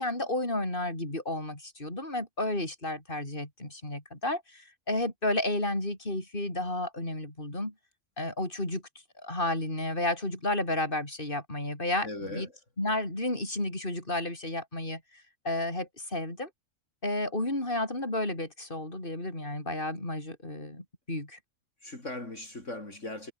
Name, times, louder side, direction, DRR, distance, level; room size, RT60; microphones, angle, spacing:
voice 1, 0.0-7.7 8.2-8.8 9.2-12.5 12.8-15.0 15.4-16.5 17.0-21.4, left 1 dB, 40° left, 6.7 m, -32 dB
voice 2, 12.0-12.5 21.8-23.3, left 2 dB, 70° left, 6.0 m, -39 dB
omnidirectional pair, 1.3 m